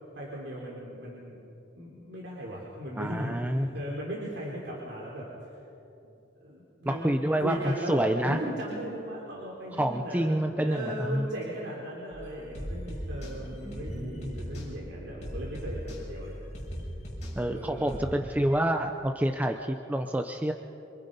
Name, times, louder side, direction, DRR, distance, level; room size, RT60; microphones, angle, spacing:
voice 1, 0.1-1.4 1.7-5.5 6.4-16.4 17.4-18.2, equal, 70° right, -4 dB, 3.8 m, -38 dB
voice 2, 3.0-3.7 6.9-8.4 9.8-11.3 13.7-14.3 17.4-20.5, right 1 dB, 10° right, 4 dB, 0.6 m, -28 dB
sound 1, 12.1-18.0, equal, 40° left, 7.5 m, -39 dB
27.0 x 23.5 x 5.4 m, 3.0 s
head